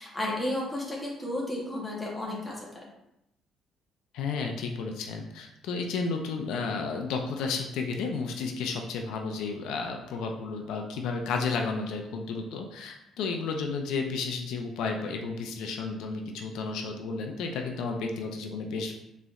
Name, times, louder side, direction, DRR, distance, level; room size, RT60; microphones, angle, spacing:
voice 1, 0.0-2.9, left 1 dB, 10° left, -4 dB, 0.9 m, -33 dB
voice 2, 4.1-19.0, left 4 dB, 85° left, 3 dB, 0.4 m, -32 dB
3.9 x 3.1 x 2.4 m, 0.85 s
cardioid pair, 150°, 0 cm